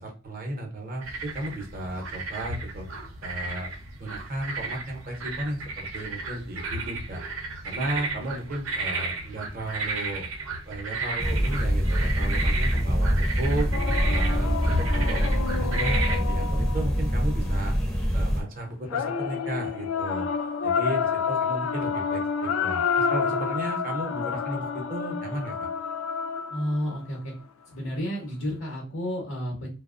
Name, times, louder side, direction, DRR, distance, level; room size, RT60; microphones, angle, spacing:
voice 1, 0.0-2.8 3.2-3.7 4.0-7.2 7.6-10.3 10.7-13.7 14.0-17.7 18.1-20.3 20.6-25.7, right 1 dB, 45° right, 1 dB, 0.6 m, -34 dB
sound 1, 1.0-16.2, right 3 dB, 85° right, 0.6 m, -34 dB
sound 2, 11.2-18.4, equal, 5° left, 0.5 m, -24 dB
sound 3, 13.7-17.5 18.9-27.0, left 6 dB, 85° left, 0.3 m, -29 dB
voice 2, 26.5-27.3 27.7-29.7, equal, 70° left, -1 dB, 0.8 m, -31 dB
2.7 x 2.0 x 2.4 m, 0.35 s
head